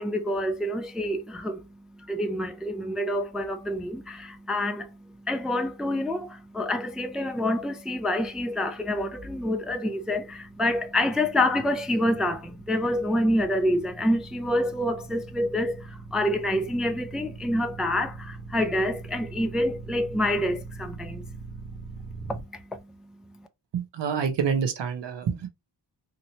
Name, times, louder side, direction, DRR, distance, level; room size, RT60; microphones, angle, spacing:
voice 1, 0.0-21.6 22.0-23.2, left 1 dB, ahead, 0.4 m, -27 dB
sound 1, 9.1-22.4, right 4 dB, 50° right, 1.2 m, -42 dB
voice 2, 23.7-25.5, right 6 dB, 75° right, 0.9 m, -27 dB
2.9 x 2.6 x 2.9 m
cardioid pair, 55°, 43 cm